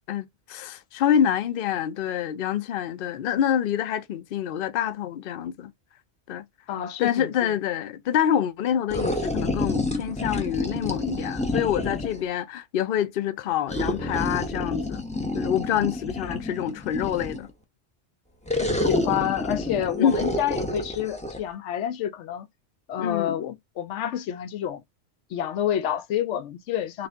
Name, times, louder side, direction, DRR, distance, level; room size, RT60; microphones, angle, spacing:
voice 1, 0.1-5.7 6.3-6.4 7.0-15.0 15.3-17.5 20.0-20.2 23.0-23.3, left 9 dB, 60° left, 0.7 m, -26 dB
voice 2, 6.7-7.5 18.6-22.5 22.9-24.8 25.3-27.1, left 10 dB, 90° left, 0.9 m, -28 dB
sound 1, 8.9-12.3 13.7-17.5 18.5-21.4, left 1 dB, 10° left, 0.6 m, -29 dB
4.1 x 2.4 x 3.4 m
omnidirectional pair, 1.2 m